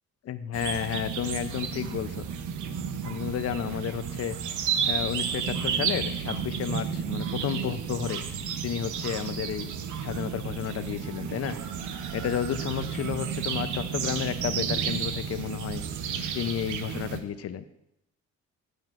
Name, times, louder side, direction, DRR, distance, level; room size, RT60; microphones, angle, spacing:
voice 1, 0.2-2.3 3.1-4.4 4.9-8.2 8.6-9.7 10.0-11.6 12.1-15.8 16.3-17.6, left 9 dB, 55° left, 12 dB, 0.6 m, -32 dB
sound 1, 0.5-17.2, right 7 dB, 80° right, 0.8 m, -32 dB
9.0 x 8.0 x 2.5 m, 0.82 s
cardioid pair, 90°, 30 cm